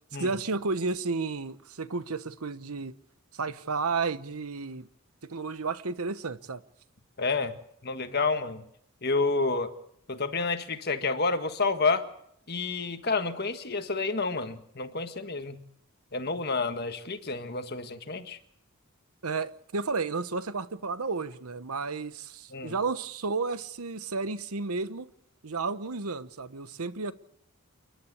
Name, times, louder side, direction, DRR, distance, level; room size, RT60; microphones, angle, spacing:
voice 1, 0.1-2.9 3.3-4.9 5.2-6.6 19.2-25.1 25.4-27.1, right 4 dB, 80° right, 1.1 m, -32 dB
voice 2, 7.2-7.5 7.8-8.6 9.0-9.7 10.1-12.0 12.5-15.6 16.1-18.4 22.5-22.7, left 4 dB, 45° left, 1.7 m, -29 dB
29.0 x 11.5 x 8.4 m
head